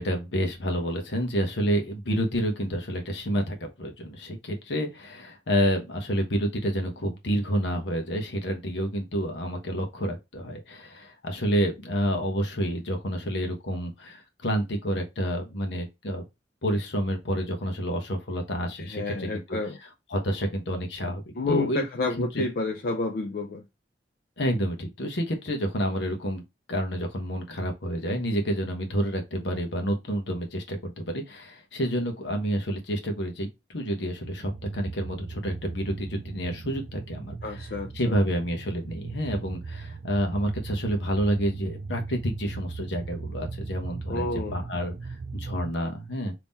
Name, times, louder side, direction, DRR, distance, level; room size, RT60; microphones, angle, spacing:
voice 1, 0.0-16.2 16.6-19.4 20.1-21.8 22.3-22.4 24.4-26.4 26.7-37.6 37.9-46.3, equal, 75° left, 1.0 m, -29 dB
voice 2, 18.8-19.8 21.3-23.6 37.4-38.1 44.1-44.6, left 3 dB, 55° left, 0.5 m, -30 dB
sound 1, 34.2-45.7, right 4 dB, 40° right, 0.3 m, -38 dB
3.6 x 2.9 x 2.6 m
head